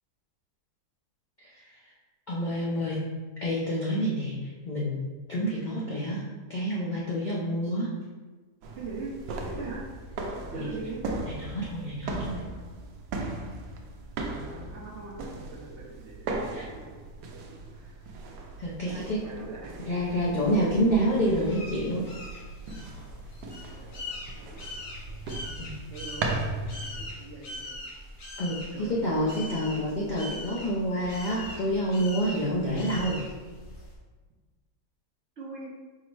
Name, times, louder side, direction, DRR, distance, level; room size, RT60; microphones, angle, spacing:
voice 1, 2.3-3.0 3.4-5.0 5.3-6.2 6.5-7.9 10.5-10.6 11.5-12.4 16.5-16.6 18.6-19.2 19.9-22.1 25.6-25.7 28.4-33.2, equal, 75° left, -6 dB, 0.4 m, -28 dB
sound 1, 8.6-27.1, right 2 dB, 85° right, 1.2 m, -38 dB
voice 2, 8.8-9.2 9.4-9.8 10.5-11.0 14.3-17.0 17.3-18.0 18.9-21.0 23.7-24.6 25.1-27.7 28.7-29.8 35.4-35.7, right 3 dB, 55° right, -4 dB, 0.9 m, -43 dB
sound 2, 20.0-34.0, left 1 dB, 60° left, 1.3 m, -42 dB
4.6 x 2.1 x 4.5 m, 1.3 s
omnidirectional pair, 1.7 m